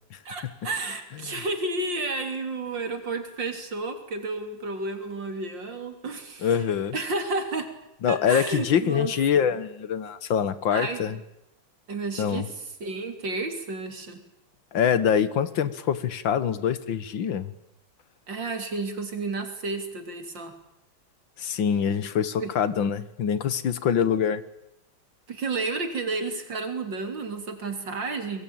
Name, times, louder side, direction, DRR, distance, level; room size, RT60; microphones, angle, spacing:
voice 1, 0.3-6.7 6.9-7.7 8.1-9.5 10.7-11.0 11.9-12.5 12.8-14.2 18.3-20.5 22.4-22.5 25.3-28.4, right 3 dB, 65° right, 7 dB, 3.8 m, -31 dB
voice 2, 6.4-6.9 8.0-11.2 12.2-12.5 14.7-17.5 21.4-24.4, left 8 dB, 70° left, 15 dB, 2.0 m, -25 dB
25.0 x 22.0 x 8.8 m, 0.83 s
omnidirectional pair, 2.1 m